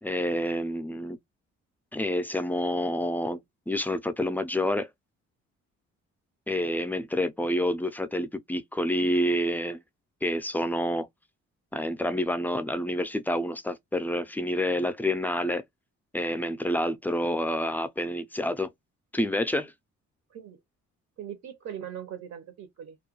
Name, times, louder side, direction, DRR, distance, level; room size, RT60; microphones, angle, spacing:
voice 1, 0.0-1.2 1.9-3.4 3.7-4.9 6.5-9.8 10.2-11.1 11.7-15.6 16.1-18.7 19.1-19.7, left 1 dB, 5° left, 0.4 m, -28 dB
voice 2, 21.2-23.0, right 9 dB, 65° right, 0.7 m, -40 dB
2.4 x 2.2 x 2.9 m
cardioid pair, 90°, 30 cm